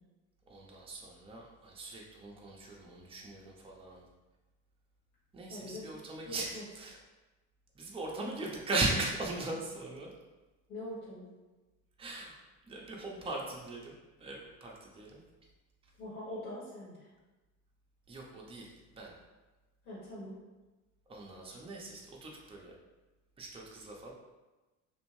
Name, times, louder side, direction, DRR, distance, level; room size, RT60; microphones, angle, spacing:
voice 1, 0.5-4.0 5.3-7.0 7.7-10.1 12.0-12.3 12.6-15.2 18.1-19.2 21.1-22.7 23.4-24.1, right 2 dB, 15° right, -2 dB, 0.6 m, -39 dB
voice 2, 5.5-5.8 6.2-6.6 8.1-8.4 10.7-11.3 16.0-17.1 19.8-20.4, left 1 dB, 90° left, -9 dB, 1.4 m, -43 dB
2.6 x 2.5 x 3.1 m, 1.1 s
hypercardioid pair, 65°, 43 cm